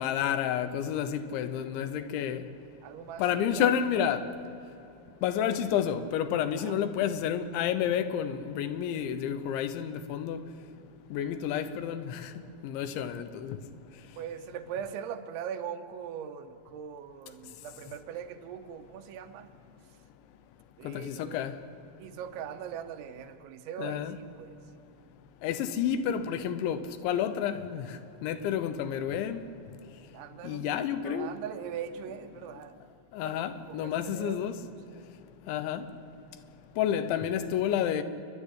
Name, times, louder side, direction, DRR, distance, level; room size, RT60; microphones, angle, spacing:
voice 1, 0.0-2.4 3.2-4.2 5.2-10.4 11.1-12.3 12.6-13.6 20.8-21.5 23.8-24.2 25.4-27.9 28.2-29.4 30.4-31.3 33.1-34.6 35.5-35.8 36.8-38.0, left 9 dB, 80° left, 3.3 m, -30 dB
voice 2, 2.8-3.9 6.6-6.8 14.2-19.5 20.8-21.5 22.0-24.6 30.1-32.9 33.2-33.4 33.7-34.5 34.9-35.0, right 8 dB, 90° right, 3.4 m, -41 dB
28.5 x 11.0 x 9.8 m
omnidirectional pair, 5.3 m